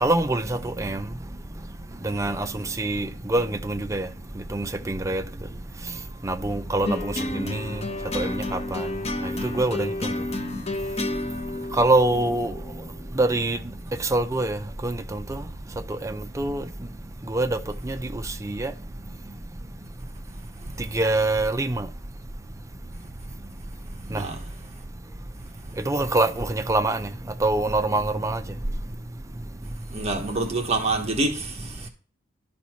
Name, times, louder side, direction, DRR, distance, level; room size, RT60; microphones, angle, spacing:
voice 1, 0.0-1.0 2.0-2.5 2.8-4.1 4.5-5.2 6.2-7.6 8.1-8.4 8.7-8.9 9.6-9.9 11.8-12.5 13.2-13.6 14.1-14.6 14.8-14.9 15.3-15.4 16.0-16.6 17.3-17.5 17.9-18.0 18.5-18.7 20.9-21.9 24.1-24.2 25.9-27.0 27.4-28.4, right 2 dB, 15° right, 0.5 m, -24 dB
sound 1, 6.8-13.3, left 2 dB, 35° left, 0.7 m, -31 dB
voice 2, 24.1-24.5 29.9-31.9, right 2 dB, 35° right, 1.2 m, -27 dB
12.0 x 4.3 x 4.4 m
head